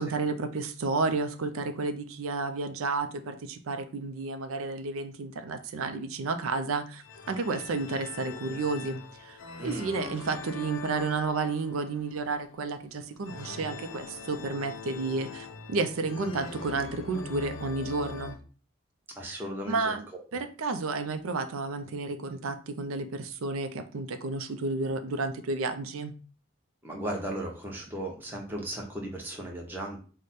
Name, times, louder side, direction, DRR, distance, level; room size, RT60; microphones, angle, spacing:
voice 1, 0.0-18.4 19.2-19.4 19.6-20.1 20.3-26.1, right 3 dB, 85° right, 8 dB, 0.4 m, -31 dB
sound 1, 7.0-18.4, left 4 dB, 65° left, 0.6 m, -42 dB
voice 2, 9.6-9.9 19.1-20.2 26.8-30.0, right 1 dB, 10° right, -1 dB, 0.8 m, -36 dB
4.9 x 2.1 x 4.1 m, 0.39 s
head